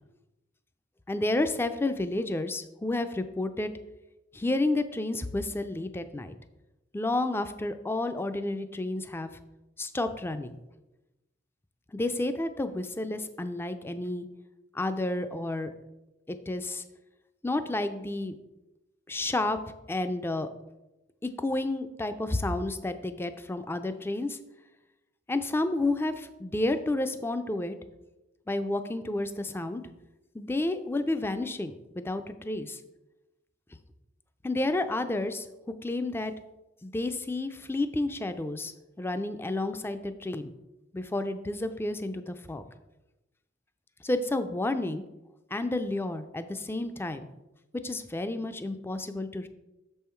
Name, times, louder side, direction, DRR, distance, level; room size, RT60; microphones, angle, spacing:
voice 1, 1.1-3.7 4.3-6.3 6.9-9.3 9.8-10.6 11.9-14.3 14.7-15.7 16.3-16.8 17.4-18.3 19.1-19.6 19.9-20.5 21.2-24.4 25.3-27.8 28.5-29.8 30.3-32.8 34.4-35.5 35.8-36.3 36.8-40.5 40.9-42.6 44.0-45.0 45.5-47.3 47.7-49.5, left 2 dB, 10° left, 10 dB, 0.4 m, -30 dB
6.6 x 5.5 x 4.4 m, 0.99 s
head